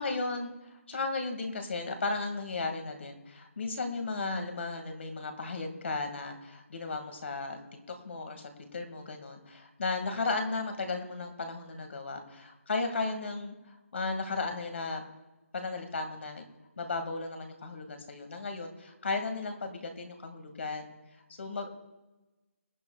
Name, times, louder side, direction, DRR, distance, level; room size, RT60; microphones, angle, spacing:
voice 1, 0.0-7.6 7.9-15.0 15.5-16.4 16.8-20.9 21.4-21.7, left 3 dB, 55° left, 5 dB, 2.0 m, -35 dB
19.5 x 12.0 x 2.4 m, 1.1 s
figure-of-eight pair, 150°, 8 cm